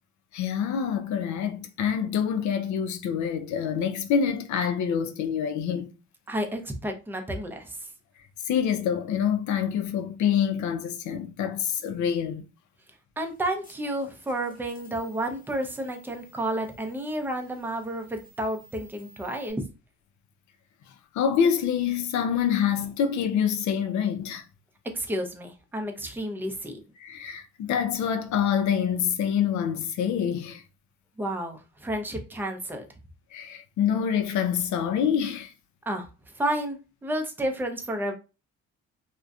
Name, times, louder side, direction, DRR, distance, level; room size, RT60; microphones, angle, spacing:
voice 1, 0.3-5.9 8.5-12.4 21.1-24.4 27.0-30.6 33.3-35.5, left 8 dB, 70° left, 0.5 m, -26 dB
voice 2, 6.3-7.8 13.2-19.6 24.9-26.8 31.2-32.9 35.9-36.1 36.4-36.8 37.0-38.1, right 1 dB, 5° right, 0.5 m, -31 dB
sound 1, 13.2-19.5, left 1 dB, 25° left, 0.9 m, -57 dB
2.5 x 2.1 x 2.3 m
cardioid pair, 90°, 30 cm